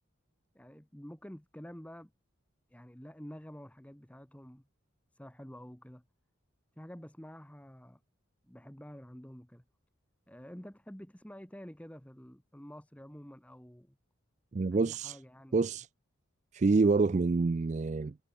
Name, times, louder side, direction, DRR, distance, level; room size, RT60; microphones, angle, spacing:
voice 1, 0.5-2.1 2.7-4.7 5.1-6.0 6.8-8.0 8.5-9.6 10.3-14.0 14.7-15.6, equal, 5° left, 1.3 m, -49 dB
voice 2, 14.5-15.2 15.5-15.9 16.5-18.2, right 3 dB, 35° right, 0.3 m, -27 dB
head